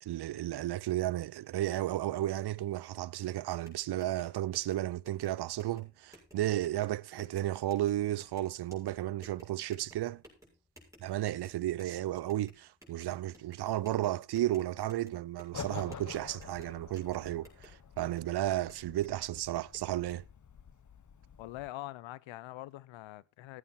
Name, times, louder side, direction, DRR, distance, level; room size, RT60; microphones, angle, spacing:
voice 1, 0.0-10.2 11.0-20.2, right 14 dB, 55° right, 0.7 m, -33 dB
sound 1, 3.5-20.2, equal, 5° right, 7.0 m, -59 dB
sound 2, 15.5-21.7, left 7 dB, 40° left, 1.2 m, -48 dB
voice 2, 21.4-23.6, left 16 dB, 75° left, 0.8 m, -44 dB
14.5 x 9.2 x 4.3 m
supercardioid pair, 60°, 47 cm